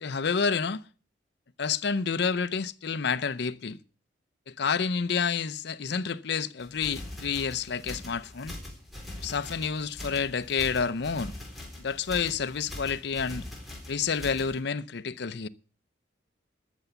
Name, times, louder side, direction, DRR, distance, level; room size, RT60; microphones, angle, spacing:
voice 1, 0.0-0.8 1.6-3.8 4.5-8.6 9.2-11.3 11.8-13.4 13.9-15.5, left 5 dB, 65° left, 0.6 m, -29 dB
sound 1, 6.6-14.6, left 1 dB, ahead, 3.7 m, -42 dB
13.5 x 7.0 x 8.2 m
head